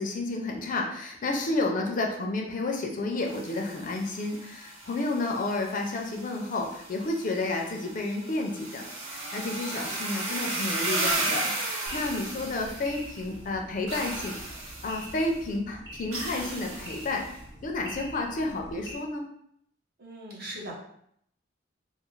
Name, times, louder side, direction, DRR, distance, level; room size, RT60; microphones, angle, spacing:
voice 1, 0.0-14.4 14.8-17.3 17.6-19.2, left 2 dB, 40° left, 2 dB, 0.4 m, -31 dB
sound 1, 3.2-13.3 13.9-15.3 16.1-17.3, right 2 dB, 85° right, 0.6 m, -35 dB
sound 2, 11.9-18.9, right 1 dB, 20° right, 0.4 m, -45 dB
voice 2, 20.0-20.7, right 1 dB, 50° right, -3 dB, 0.7 m, -39 dB
2.4 x 2.4 x 3.0 m, 0.70 s
head